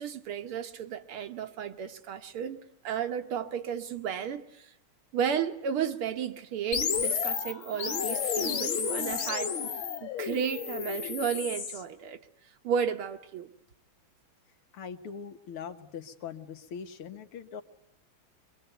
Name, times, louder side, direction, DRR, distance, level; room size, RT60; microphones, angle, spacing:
voice 1, 0.0-2.6 2.8-4.7 5.1-9.5 10.0-12.2 12.6-13.5, right 8 dB, 80° right, 2.1 m, -33 dB
sound 1, 6.7-11.8, left 7 dB, 65° left, 2.6 m, -31 dB
voice 2, 14.7-17.6, left 7 dB, 85° left, 2.3 m, -41 dB
23.5 x 23.5 x 9.2 m
omnidirectional pair, 2.3 m